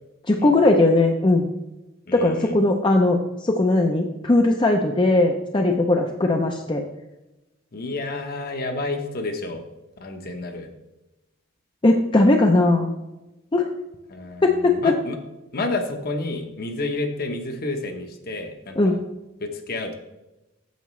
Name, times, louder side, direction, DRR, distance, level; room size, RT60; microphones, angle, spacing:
voice 1, 0.3-1.5 2.1-6.8 11.8-12.9 13.5-13.7 14.4-14.9 18.8-18.9, left 2 dB, 25° left, 3 dB, 0.5 m, -19 dB
voice 2, 2.1-2.6 7.7-9.6 10.0-10.7 14.1-15.2 15.5-19.0 19.4-20.0, left 2 dB, 50° left, 5 dB, 1.0 m, -30 dB
9.2 x 7.1 x 3.2 m, 1.0 s
head